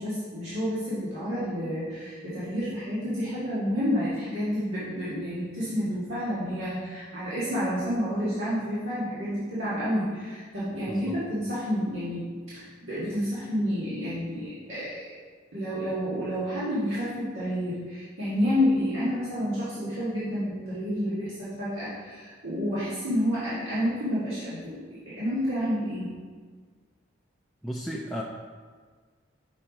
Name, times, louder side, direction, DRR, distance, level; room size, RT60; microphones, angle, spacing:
voice 1, 0.0-12.3 12.5-15.1 15.5-26.1, equal, 80° right, -11 dB, 1.7 m, -29 dB
voice 2, 10.9-11.2 27.6-28.2, equal, ahead, -3 dB, 0.3 m, -34 dB
5.7 x 4.4 x 5.0 m, 1.6 s
head